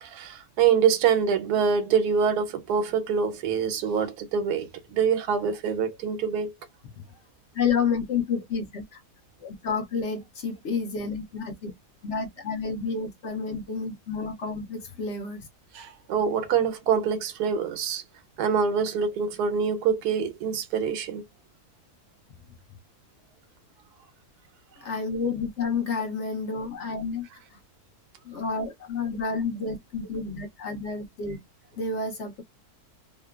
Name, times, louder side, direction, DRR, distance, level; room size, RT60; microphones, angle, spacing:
voice 1, 0.0-6.6 15.7-18.0 18.4-21.2, right 7 dB, 90° right, 1.1 m, -25 dB
voice 2, 7.5-9.0 9.4-11.7 12.0-15.5 24.8-27.6 28.2-31.4 31.7-32.4, left 5 dB, 55° left, 0.9 m, -30 dB
2.9 x 2.1 x 2.3 m
omnidirectional pair, 1.6 m